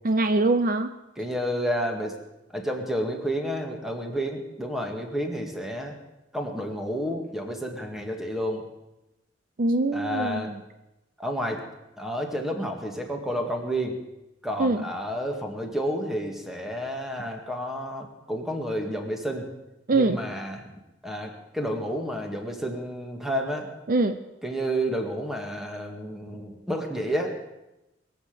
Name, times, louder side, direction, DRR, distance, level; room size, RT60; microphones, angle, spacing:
voice 1, 0.0-0.9 9.6-10.6 14.6-14.8 19.9-20.2 23.9-24.2, right 2 dB, 50° right, 9 dB, 0.7 m, -23 dB
voice 2, 1.2-2.2 2.5-6.0 6.3-8.6 9.9-10.5 11.2-11.6 12.0-14.0 14.4-19.5 19.9-20.7 21.0-23.7 24.4-27.4, equal, ahead, 2 dB, 2.1 m, -30 dB
22.5 x 8.1 x 6.8 m, 0.95 s
head